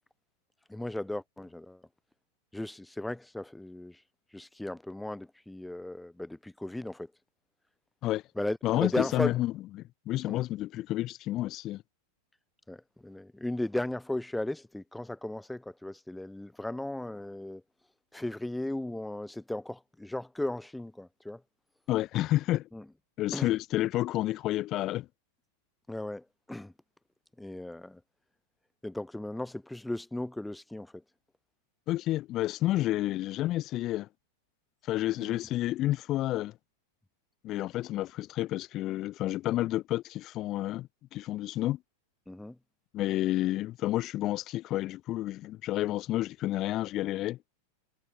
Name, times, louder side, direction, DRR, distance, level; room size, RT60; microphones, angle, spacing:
voice 1, 0.7-1.9 2.5-4.0 4.3-7.1 8.4-9.3 10.3-10.4 12.7-17.6 18.1-21.4 22.7-22.9 23.3-23.5 25.9-26.7 27.4-28.0 28.8-31.0 35.2-35.4 42.3-42.6, left 1 dB, 5° left, 0.7 m, -36 dB
voice 2, 8.6-9.5 10.1-11.8 21.9-22.7 23.2-25.1 31.9-34.1 34.8-36.5 37.4-41.8 42.9-47.4, left 15 dB, 35° left, 0.3 m, -30 dB
figure-of-eight pair, 90°, 0 cm